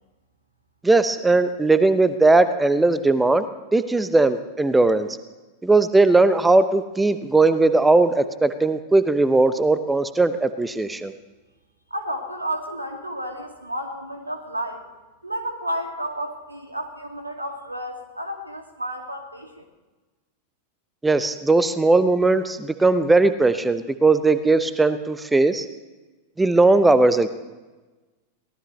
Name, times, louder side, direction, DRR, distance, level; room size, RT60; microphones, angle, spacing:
voice 1, 0.8-3.4 3.7-5.1 5.6-11.1 21.0-25.6 26.4-27.3, right 3 dB, 10° right, 13 dB, 0.8 m, -18 dB
voice 2, 11.9-14.9 15.2-19.6, right 1 dB, 85° right, 4 dB, 2.3 m, -31 dB
23.5 x 18.0 x 3.2 m, 1.2 s
figure-of-eight pair, 90°, 0 cm